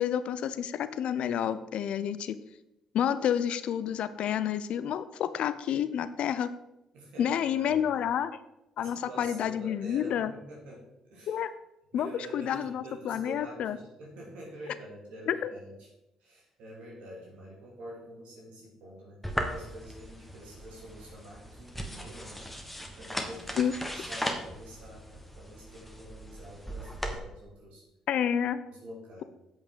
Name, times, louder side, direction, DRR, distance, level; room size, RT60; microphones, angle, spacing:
voice 1, 0.0-2.4 2.9-6.5 7.2-8.3 8.8-10.3 11.3-11.5 11.9-13.8 15.3-15.5 23.6-23.8 28.1-28.6, left 9 dB, 60° left, 14 dB, 0.5 m, -29 dB
voice 2, 6.9-8.1 8.8-11.4 11.9-15.9 16.2-22.5 22.9-23.7 23.9-27.8 28.7-29.2, equal, 65° right, -3 dB, 2.7 m, -46 dB
sound 1, 19.2-27.2, equal, 5° left, 1.5 m, -38 dB
8.6 x 7.8 x 3.9 m, 0.91 s
hypercardioid pair, 45°, 2 cm